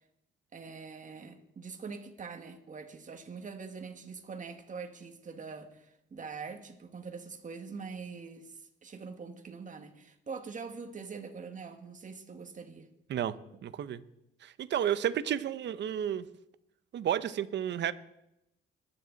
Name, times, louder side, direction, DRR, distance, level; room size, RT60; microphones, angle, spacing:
voice 1, 0.5-12.9, right 5 dB, 40° right, 6 dB, 1.8 m, -44 dB
voice 2, 13.1-14.0 14.4-16.2 16.9-17.9, right 10 dB, 65° right, 14 dB, 0.8 m, -32 dB
21.5 x 9.8 x 4.1 m, 0.82 s
cardioid pair, 90°, 20 cm